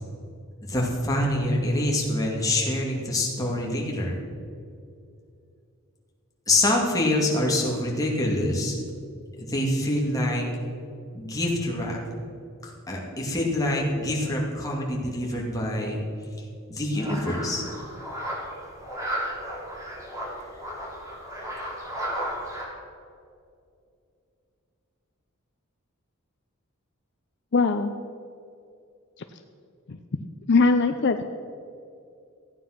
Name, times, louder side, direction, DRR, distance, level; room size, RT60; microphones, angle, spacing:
voice 1, 0.6-4.2 6.5-8.8 9.4-10.4 11.1-12.0 12.6-16.0 16.7-17.6, left 1 dB, 15° left, -3 dB, 2.4 m, -25 dB
sound 1, 16.9-22.6, equal, 15° right, 3.0 m, -34 dB
voice 2, 27.5-27.9 29.9-30.0 30.5-31.2, left 4 dB, 55° left, 7 dB, 0.6 m, -20 dB
15.0 x 9.3 x 5.9 m, 2.5 s
head